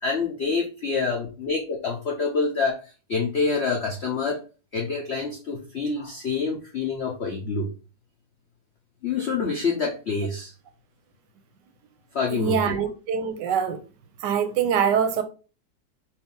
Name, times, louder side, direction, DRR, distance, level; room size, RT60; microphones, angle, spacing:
voice 1, 0.0-2.8 3.1-4.4 4.7-7.7 9.0-10.5 12.1-12.7, left 4 dB, 75° left, 0.6 m, -26 dB
voice 2, 12.3-13.8 14.2-15.2, right 7 dB, 75° right, 1.1 m, -24 dB
4.3 x 2.6 x 3.7 m
omnidirectional pair, 2.1 m